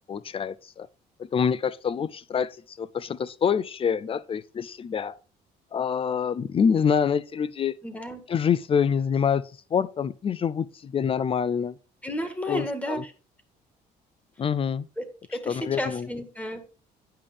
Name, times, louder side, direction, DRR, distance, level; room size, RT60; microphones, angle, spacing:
voice 1, 0.1-0.9 1.3-5.2 5.7-7.8 8.3-9.4 9.7-11.7 12.5-13.0 14.4-14.9 15.5-16.1, left 7 dB, 35° left, 0.5 m, -26 dB
voice 2, 7.8-8.2 12.0-13.1 15.0-15.1 15.3-16.7, equal, 10° left, 1.8 m, -32 dB
9.0 x 5.3 x 5.1 m
cardioid pair, 110°, 17 cm